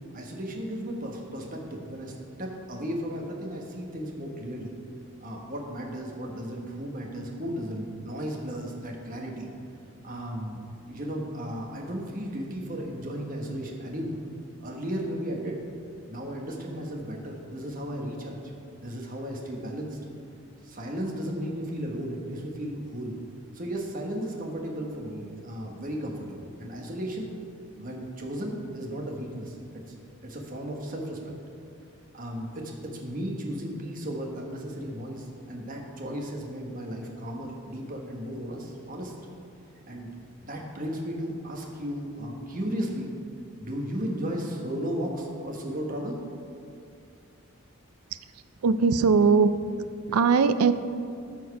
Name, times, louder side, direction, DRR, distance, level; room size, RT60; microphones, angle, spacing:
voice 1, 0.1-2.1 2.4-4.7 5.2-9.5 10.0-14.2 14.6-15.6 16.1-18.4 18.8-20.0 20.6-23.2 23.5-27.3 27.8-29.8 30.2-31.2 32.1-39.1 39.9-40.1 40.4-43.1 43.6-46.2, equal, 40° right, 0 dB, 1.2 m, -35 dB
voice 2, 48.6-49.6 50.1-50.7, right 5 dB, 85° right, 11 dB, 0.4 m, -20 dB
13.0 x 4.5 x 5.8 m, 2.4 s
head